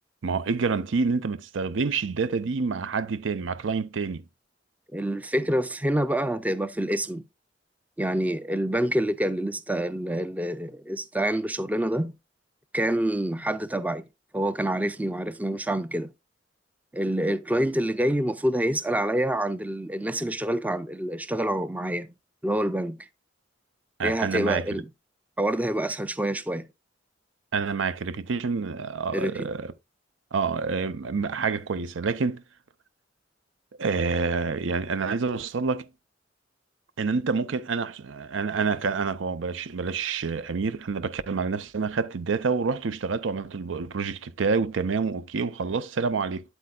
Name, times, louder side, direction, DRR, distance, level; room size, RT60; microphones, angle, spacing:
voice 1, 0.2-4.2 24.0-24.7 27.5-29.7 30.3-32.4 33.8-35.9 37.0-46.4, right 4 dB, 85° right, 0.6 m, -27 dB
voice 2, 4.9-7.2 8.0-12.2 12.7-14.1 14.3-16.1 16.9-22.1 22.4-23.1 24.0-24.9 25.4-26.7 29.1-29.5, right 1 dB, 10° right, 0.4 m, -27 dB
8.6 x 7.9 x 2.3 m
head